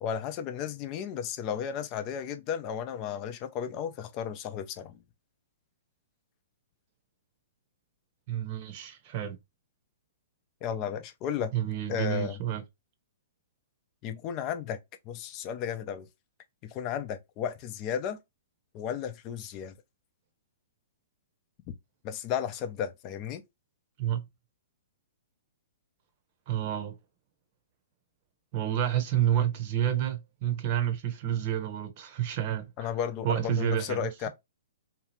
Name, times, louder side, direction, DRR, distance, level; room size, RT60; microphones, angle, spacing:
voice 1, 0.0-5.0 10.6-11.5 11.9-12.4 14.0-14.8 15.0-16.1 16.6-18.2 18.7-19.7 22.0-23.4 32.8-34.3, left 8 dB, 35° left, 0.6 m, -34 dB
voice 2, 8.3-9.4 11.5-12.6 24.0-24.2 26.5-27.0 28.5-32.7 33.2-34.1, right 11 dB, 45° right, 0.9 m, -29 dB
2.8 x 2.4 x 3.0 m
hypercardioid pair, 125°, 0 cm